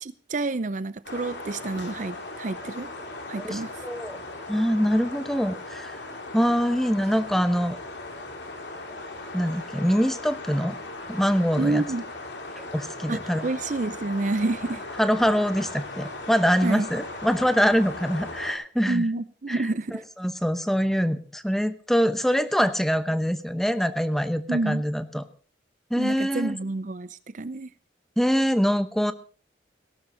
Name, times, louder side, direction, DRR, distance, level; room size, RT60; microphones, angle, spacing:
voice 1, 0.0-2.9 3.3-3.7 11.6-12.0 13.1-14.8 16.6-16.9 18.9-20.0 24.5-24.8 26.0-27.7, right 2 dB, 40° right, 16 dB, 0.5 m, -29 dB
sound 1, 1.0-18.5, left 2 dB, 70° left, 3.1 m, -38 dB
voice 2, 3.4-4.2 4.5-6.0 6.3-7.8 9.3-10.8 11.1-11.8 12.7-13.4 15.0-19.1 19.5-19.7 19.9-25.2 25.9-26.6 28.2-29.1, equal, ahead, 11 dB, 0.9 m, -24 dB
18.0 x 12.0 x 3.9 m, 0.41 s
head